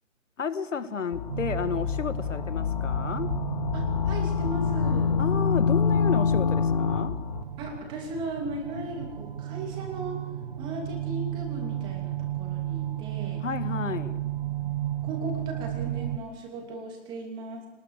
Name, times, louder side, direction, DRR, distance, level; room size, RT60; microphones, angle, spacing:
voice 1, 0.4-3.3 5.2-7.1 13.4-14.2, left 6 dB, 70° left, 12 dB, 1.7 m, -31 dB
sound 1, 1.1-7.4, left 6 dB, 30° left, 1.3 m, -26 dB
sound 2, 1.3-16.2, right 12 dB, 40° right, 0.7 m, -34 dB
voice 2, 3.7-5.2 7.6-10.2 10.6-13.4 15.0-17.6, right 2 dB, 10° right, 2 dB, 2.9 m, -37 dB
24.0 x 20.0 x 6.7 m, 1.2 s
hypercardioid pair, 165°, 38 cm